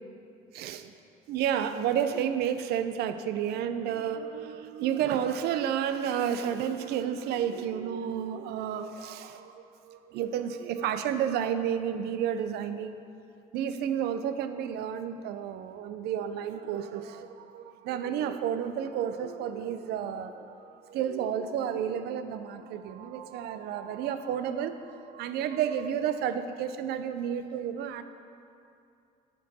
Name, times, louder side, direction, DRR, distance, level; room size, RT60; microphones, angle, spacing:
voice 1, 0.5-0.9 1.3-13.0 13.5-28.0, right 9 dB, 75° right, 10 dB, 0.4 m, -31 dB
7.4 x 4.5 x 4.1 m, 2.6 s
cardioid pair, 110°, 17 cm